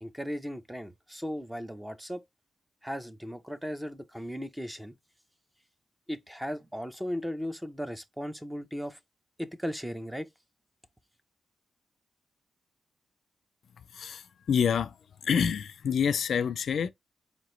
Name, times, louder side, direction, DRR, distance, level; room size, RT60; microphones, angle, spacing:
voice 1, 0.0-2.2 2.8-4.9 6.1-9.0 9.4-10.3, equal, 5° right, 0.5 m, -36 dB
voice 2, 13.9-15.0 15.2-16.9, left 7 dB, 70° left, 0.3 m, -27 dB
4.3 x 2.9 x 3.1 m
wide cardioid pair, 120°, 0 cm